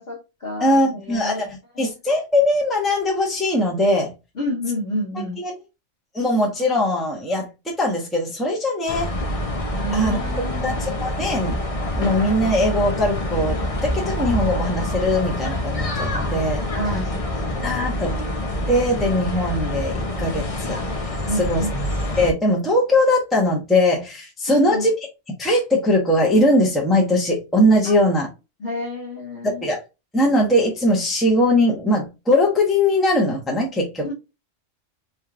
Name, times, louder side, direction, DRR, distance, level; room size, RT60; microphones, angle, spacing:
voice 1, 0.0-1.5 1.7-1.9 4.3-5.4 9.7-10.8 16.7-17.8 21.3-21.8 24.5-24.9 27.8-27.9 28.6-29.6 34.0-34.1, left 1 dB, 55° left, 1.5 m, -29 dB
voice 2, 0.6-1.5 1.8-4.1 5.4-5.5 6.1-9.1 9.9-10.2 10.6-11.6 11.9-13.6 13.8-16.6 17.6-18.3 18.7-21.6 22.2-24.9 25.4-28.3 29.6-29.8 30.1-34.1, left 1 dB, ahead, 1.1 m, -20 dB
sound 1, 8.9-22.3, left 1 dB, 35° left, 0.7 m, -26 dB
4.3 x 3.4 x 2.4 m
omnidirectional pair, 1.3 m